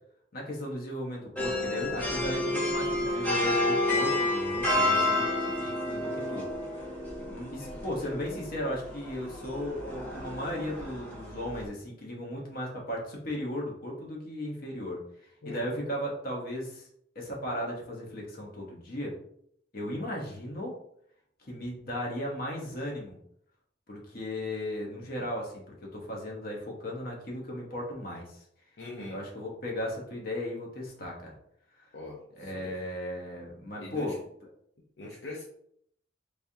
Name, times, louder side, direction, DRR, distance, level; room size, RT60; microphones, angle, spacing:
voice 1, 0.3-6.5 7.2-16.9 17.1-19.1 19.7-20.7 21.4-23.2 23.9-28.4 29.1-31.3 32.4-34.1, left 1 dB, 50° left, -1 dB, 1.0 m, -36 dB
sound 1, 1.4-11.7, left 1 dB, 10° left, 1.1 m, -30 dB
voice 2, 4.7-5.1 15.4-15.6 28.8-29.2 31.9-32.8 33.8-34.2 35.0-35.4, left 2 dB, 65° left, -3 dB, 0.6 m, -41 dB
3.4 x 3.3 x 2.7 m, 0.70 s
head